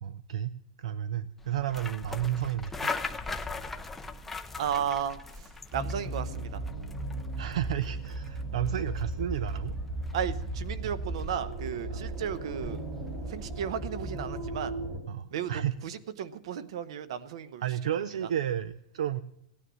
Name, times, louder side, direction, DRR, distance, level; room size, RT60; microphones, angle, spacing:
voice 1, 0.0-2.9 7.4-9.8 10.8-10.9 11.9-12.0 15.1-15.7 17.6-19.2, right 10 dB, 75° right, 15 dB, 0.5 m, -32 dB
sound 1, 1.4-13.7, left 3 dB, 5° left, 0.5 m, -41 dB
voice 2, 4.6-6.6 10.1-12.8 13.3-14.7 15.3-17.6 18.2-18.3, right 8 dB, 55° right, 14 dB, 0.9 m, -34 dB
sound 2, 5.7-15.0, right 2 dB, 25° right, 2.4 m, -36 dB
17.0 x 9.8 x 6.3 m, 0.77 s
supercardioid pair, 170°, 4 cm